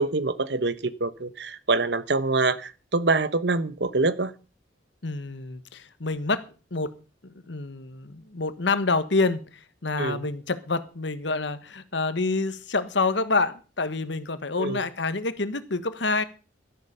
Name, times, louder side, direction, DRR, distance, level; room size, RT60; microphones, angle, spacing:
voice 1, 0.0-4.3 10.0-10.2 14.6-14.8, right 3 dB, 60° right, 15 dB, 1.0 m, -25 dB
voice 2, 5.0-6.4 6.7-6.9 7.2-16.2, left 3 dB, 75° left, 13 dB, 1.3 m, -27 dB
13.0 x 11.0 x 5.5 m, 0.36 s
head